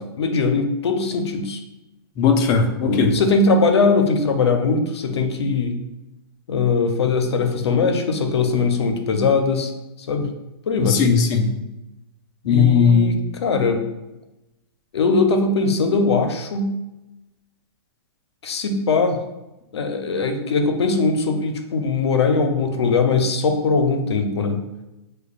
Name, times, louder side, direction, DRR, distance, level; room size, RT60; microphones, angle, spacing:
voice 1, 0.0-1.6 2.8-5.8 6.5-9.7 10.0-10.3 10.7-11.0 12.4-13.9 14.9-16.7 18.4-19.2 19.7-24.6, left 4 dB, 80° left, 6 dB, 0.6 m, -20 dB
voice 2, 2.2-3.2 10.8-11.5 12.5-13.1, left 6 dB, 25° left, 4 dB, 0.5 m, -17 dB
6.2 x 2.3 x 2.4 m, 0.97 s
hypercardioid pair, 140°, 14 cm